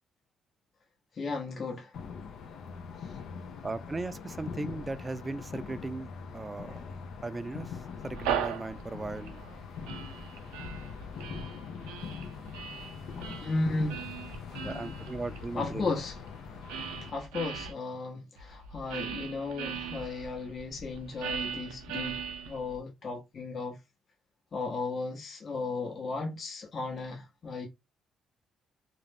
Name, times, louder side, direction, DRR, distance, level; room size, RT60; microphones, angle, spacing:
voice 1, 1.2-1.9 13.4-14.0 15.5-16.2 17.1-22.2 22.4-23.7 24.5-27.7, left 3 dB, 50° left, 0.9 m, -35 dB
sound 1, 1.9-17.1, left 6 dB, 70° left, 0.5 m, -42 dB
voice 2, 3.6-6.9 7.2-7.7 8.0-9.4 14.6-15.9, right 3 dB, 25° right, 0.4 m, -37 dB
sound 2, 7.9-17.7 18.4-22.8, right 7 dB, 90° right, 0.4 m, -39 dB
2.4 x 2.0 x 3.3 m
supercardioid pair, 60°, 0 cm